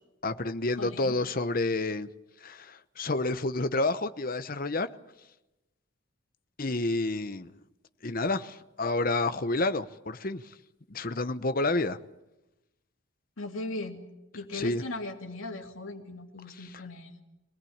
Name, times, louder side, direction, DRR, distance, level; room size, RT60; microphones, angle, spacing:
voice 1, 0.2-2.1 2.4-4.9 6.6-7.5 8.0-10.4 10.9-12.0 14.5-14.8 16.6-16.7, left 2 dB, 45° left, 0.9 m, -29 dB
voice 2, 0.8-1.1 13.4-14.0 14.3-17.2, left 2 dB, 80° left, 2.7 m, -38 dB
24.0 x 19.0 x 8.7 m
head